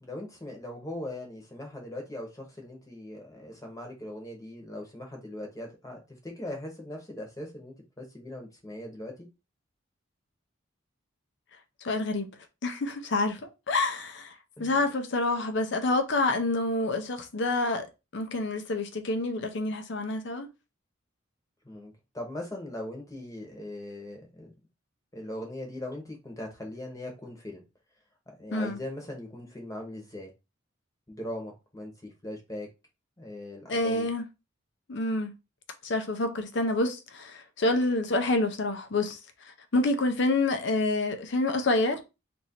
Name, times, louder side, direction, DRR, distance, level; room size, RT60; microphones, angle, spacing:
voice 1, 0.0-9.3 14.6-14.8 21.6-24.5 25.1-27.6 28.4-30.3 31.1-32.7 33.2-34.1, left 1 dB, 15° left, 1.1 m, -40 dB
voice 2, 11.8-12.3 12.6-13.4 13.7-14.3 14.6-17.9 18.1-20.5 28.5-28.8 33.7-34.2 34.9-35.3 35.8-39.2 39.7-42.0, left 2 dB, 55° left, 0.6 m, -27 dB
3.0 x 2.6 x 4.3 m
head